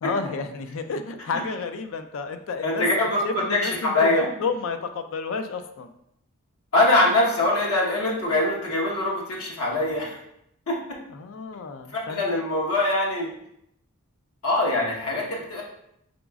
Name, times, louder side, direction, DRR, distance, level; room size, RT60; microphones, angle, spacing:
voice 1, 0.0-2.8 3.2-5.9 11.1-12.4, left 4 dB, 60° left, 8 dB, 0.3 m, -31 dB
voice 2, 2.6-3.2 3.5-4.3 6.7-10.2 10.7-10.8 11.9-13.3 14.4-15.6, left 2 dB, 80° left, -4 dB, 1.2 m, -23 dB
5.0 x 3.9 x 2.4 m, 0.76 s
head